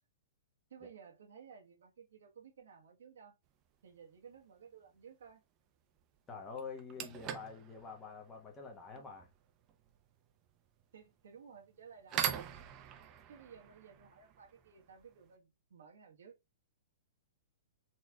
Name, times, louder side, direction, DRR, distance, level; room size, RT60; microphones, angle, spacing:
voice 1, 0.7-3.4 3.8-5.4 10.9-12.5 13.3-16.4, right 6 dB, 75° right, 1.2 m, -56 dB
sound 1, 3.7-3.9 6.0-6.1 6.6-15.3, right 10 dB, 35° right, 0.7 m, -43 dB
voice 2, 6.3-9.3, left 5 dB, 20° left, 1.0 m, -47 dB
4.2 x 3.1 x 2.3 m
hypercardioid pair, 120°, 0 cm